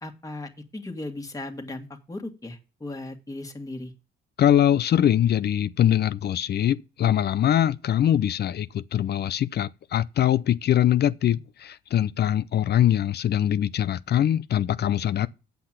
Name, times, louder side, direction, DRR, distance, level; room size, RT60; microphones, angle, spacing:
voice 1, 0.0-3.9, left 2 dB, 15° left, 1.8 m, -37 dB
voice 2, 4.4-15.3, left 11 dB, 55° left, 0.5 m, -22 dB
8.5 x 5.8 x 7.5 m
cardioid pair, 90°, 20 cm